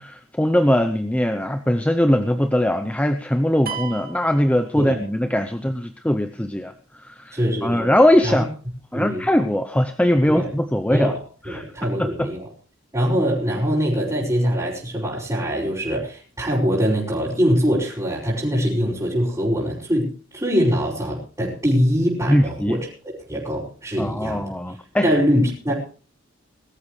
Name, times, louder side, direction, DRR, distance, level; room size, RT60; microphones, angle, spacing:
voice 1, 0.0-6.7 7.0-8.5 8.9-11.1 11.5-12.3 22.3-22.8 24.0-25.1, left 1 dB, 5° left, 8 dB, 0.7 m, -21 dB
sound 1, 3.7-5.4, right 7 dB, 50° right, 2.1 m, -35 dB
voice 2, 7.3-7.9 8.2-8.4 8.9-9.3 10.3-10.5 10.9-11.2 11.4-12.4 12.9-22.8 23.3-24.5 25.0-25.7, equal, 20° right, -8 dB, 5.0 m, -23 dB
21.5 x 13.5 x 3.2 m, 0.38 s
head